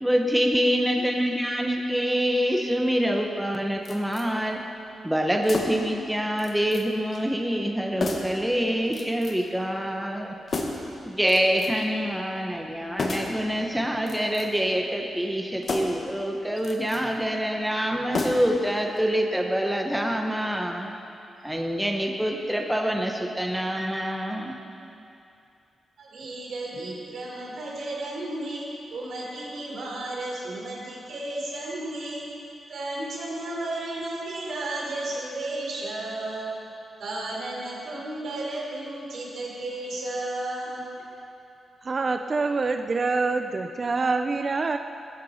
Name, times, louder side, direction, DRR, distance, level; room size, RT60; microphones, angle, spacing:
voice 1, 0.0-4.6 5.0-10.3 11.0-20.9 21.4-24.6, equal, 5° right, 2 dB, 1.0 m, -26 dB
sound 1, 3.8-4.3 5.4-5.9 6.4-6.9 7.1-7.2 8.0-8.4 8.9-9.5 10.5-10.9 11.3-11.9 13.0-13.4 14.0-14.7 15.6-16.1 16.6-17.0 18.1-18.7 19.0-19.1, left 3 dB, 45° left, 1.6 m, -32 dB
voice 2, 26.0-32.3 32.7-36.6 37.0-40.8, right 2 dB, 70° right, -4 dB, 4.8 m, -33 dB
voice 3, 41.8-44.8, right 3 dB, 35° right, 6 dB, 0.5 m, -25 dB
20.5 x 13.5 x 4.3 m, 2.7 s
wide cardioid pair, 135°, 0 cm